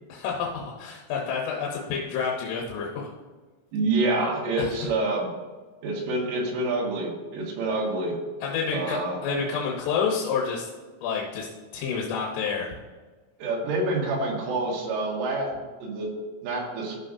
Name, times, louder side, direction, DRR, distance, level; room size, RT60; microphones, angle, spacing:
voice 1, 0.1-3.1 4.6-4.9 8.4-10.7 11.0-11.5 11.7-12.7, left 5 dB, 85° left, -2 dB, 3.5 m, -29 dB
voice 2, 3.7-5.3 5.8-8.2 8.7-9.2 13.4-15.5 15.8-16.1 16.4-17.0, right 2 dB, 85° right, -2 dB, 4.2 m, -27 dB
14.5 x 6.3 x 2.7 m, 1.3 s
omnidirectional pair, 5.6 m